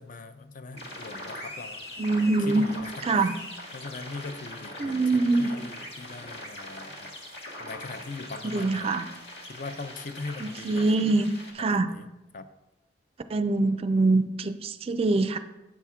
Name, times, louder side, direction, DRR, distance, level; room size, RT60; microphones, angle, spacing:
voice 1, 0.0-1.8 2.3-3.3 3.7-7.1 7.6-8.9 9.5-11.0 11.6-12.1 12.3-12.5, left 3 dB, 50° left, 10 dB, 0.5 m, -41 dB
sound 1, 0.7-11.5, left 1 dB, 70° left, 1.6 m, -41 dB
voice 2, 2.0-2.7 3.0-3.3 4.8-5.5 8.4-9.0 10.4-11.3 11.5-11.9 13.3-15.4, right 3 dB, 35° right, 11 dB, 0.4 m, -24 dB
8.4 x 5.7 x 3.6 m, 0.98 s
head